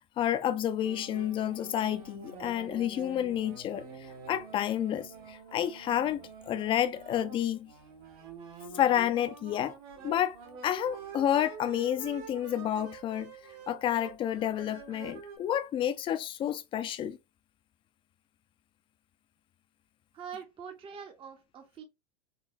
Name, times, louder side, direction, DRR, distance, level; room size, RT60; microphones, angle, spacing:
voice 1, 0.2-3.8 4.3-7.7 8.7-9.8 10.0-10.4 10.6-13.3 13.7-17.2, left 11 dB, 25° left, 0.4 m, -30 dB
sound 1, 0.8-15.4, right 5 dB, 65° right, 1.3 m, -47 dB
voice 2, 20.1-21.8, right 7 dB, 25° right, 0.6 m, -44 dB
3.9 x 2.2 x 2.5 m
supercardioid pair, 115°, 20 cm